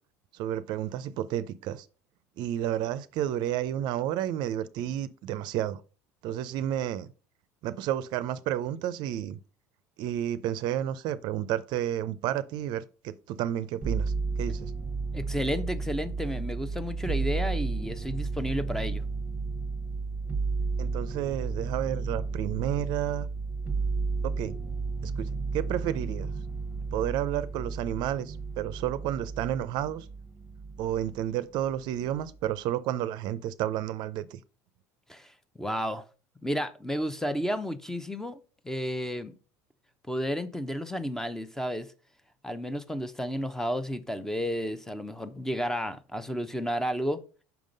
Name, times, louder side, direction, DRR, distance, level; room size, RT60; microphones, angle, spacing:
voice 1, 0.3-1.9 2.4-5.8 6.2-7.1 7.6-9.4 10.0-14.7 20.8-23.3 24.2-24.5 25.0-26.3 26.9-30.1 30.8-34.4, right 11 dB, 60° right, 0.5 m, -31 dB
sound 1, 13.8-31.2 31.6-32.4, right 4 dB, 20° right, 0.9 m, -33 dB
voice 2, 15.1-19.0 35.1-35.3 35.6-36.1 36.4-38.4 38.6-39.3 40.1-41.9 42.4-47.2, equal, 5° left, 0.7 m, -32 dB
5.9 x 3.6 x 5.2 m
supercardioid pair, 95°, 8 cm